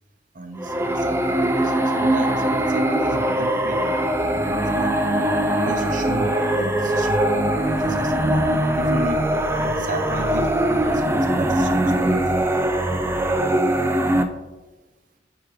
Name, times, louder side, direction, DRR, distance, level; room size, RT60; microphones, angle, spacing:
voice 1, 0.3-5.2 5.6-6.3 6.5-8.5 8.8-12.4, right 1 dB, 45° right, 4 dB, 0.8 m, -33 dB
sound 1, 0.6-14.2, right 1 dB, 15° right, 0.3 m, -21 dB
9.6 x 3.6 x 3.2 m, 1.1 s
head